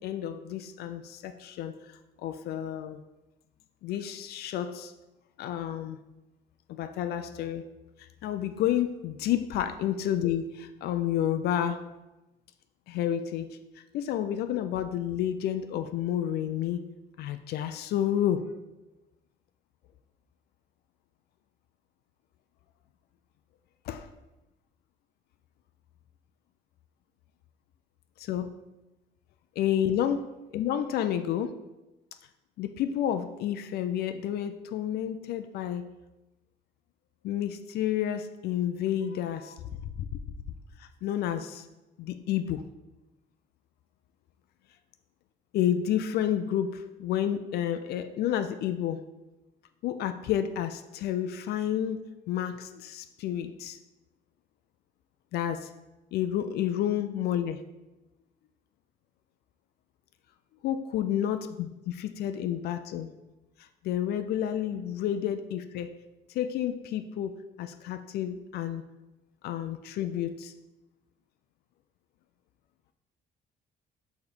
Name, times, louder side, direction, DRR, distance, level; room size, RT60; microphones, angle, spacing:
voice 1, 0.0-1.8 2.2-3.0 3.8-4.9 5.4-6.0 6.7-7.6 8.0-11.8 12.9-13.6 13.9-16.8 17.2-18.4 23.9-24.1 28.2-28.5 29.6-31.6 32.6-35.8 37.2-39.6 40.0-40.2 40.8-41.6 42.0-42.6 45.5-49.0 49.8-53.8 55.3-55.7 56.1-57.6 60.6-63.1 63.8-65.9 66.3-68.8 69.4-70.5, left 10 dB, 70° left, 9 dB, 0.4 m, -30 dB
4.9 x 4.1 x 5.2 m, 1.0 s
cardioid pair, 110°, 17 cm